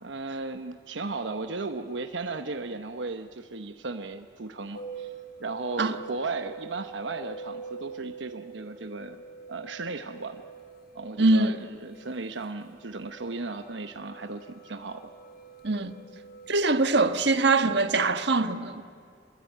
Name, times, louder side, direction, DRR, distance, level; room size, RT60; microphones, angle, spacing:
voice 1, 0.0-5.1 5.4-9.2 9.5-10.4 10.9-15.1 15.8-15.9, right 3 dB, 85° right, 1.0 m, -36 dB
sound 1, 4.7-17.7, right 4 dB, 55° left, 2.2 m, -45 dB
voice 2, 11.2-11.6 15.6-15.9 16.5-18.8, right 3 dB, 65° right, 1.4 m, -23 dB
27.0 x 22.0 x 9.4 m
head